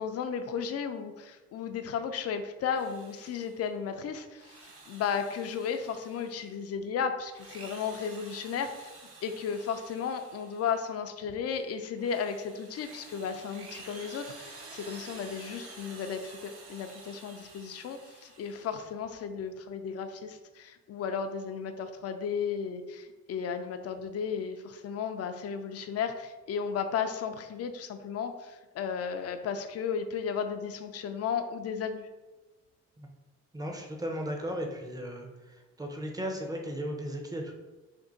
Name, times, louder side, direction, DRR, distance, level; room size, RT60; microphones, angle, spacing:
voice 1, 0.0-4.5 4.9-8.9 9.2-32.1, left 6 dB, 55° left, 8 dB, 0.5 m, -34 dB
Drill, 2.6-3.7 4.3-6.6 7.2-10.9 11.4-18.9, right 3 dB, 50° right, 0.8 m, -50 dB
voice 2, 33.5-35.3 35.8-37.5, equal, 10° right, 2 dB, 0.6 m, -35 dB
2.7 x 2.6 x 3.8 m, 1.2 s
cardioid pair, 90°, 30 cm